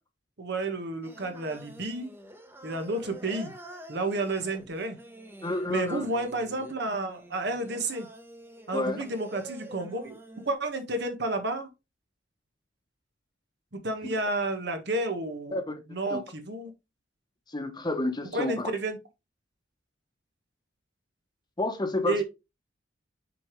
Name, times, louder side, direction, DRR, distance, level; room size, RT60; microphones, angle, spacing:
voice 1, 0.4-2.1 2.6-3.5 3.9-5.0 5.7-8.1 8.7-10.2 10.4-11.7 13.8-15.6 15.9-16.7 18.3-19.0 22.1-22.2, right 2 dB, 60° right, 1.6 m, -31 dB
Singing, 1.0-10.5, right 1 dB, 10° right, 1.0 m, -47 dB
voice 2, 5.4-6.0 8.7-9.0 15.5-15.7 16.1-16.2 17.5-18.7 21.6-22.2, left 2 dB, 25° left, 1.1 m, -30 dB
6.9 x 5.1 x 3.2 m
head